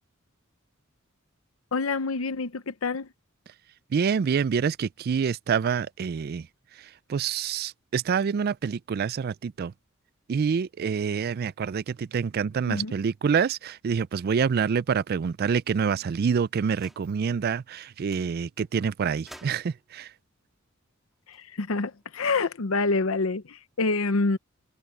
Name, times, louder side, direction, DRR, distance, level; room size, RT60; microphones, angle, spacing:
voice 1, 1.7-3.1 12.7-12.9 21.3-24.4, left 3 dB, 85° left, 0.8 m, -27 dB
voice 2, 3.9-6.5 6.8-9.7 10.3-20.1, right 6 dB, 50° right, 0.3 m, -27 dB
sound 1, 16.7-17.2 17.7-17.8 18.1-18.3 19.3-19.9 21.1-22.2, equal, ahead, 2.9 m, -52 dB
head